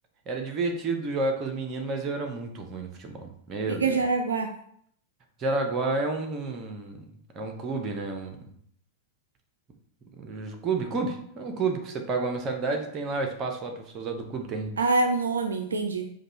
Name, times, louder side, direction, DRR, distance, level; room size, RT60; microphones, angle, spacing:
voice 1, 0.3-4.0 5.4-7.1 7.3-8.4 10.1-14.7, right 3 dB, 30° right, 4 dB, 0.8 m, -30 dB
voice 2, 3.7-4.5 14.8-16.1, right 3 dB, 70° right, 5 dB, 0.3 m, -25 dB
5.1 x 2.3 x 4.2 m, 0.68 s
figure-of-eight pair, 90°, 0 cm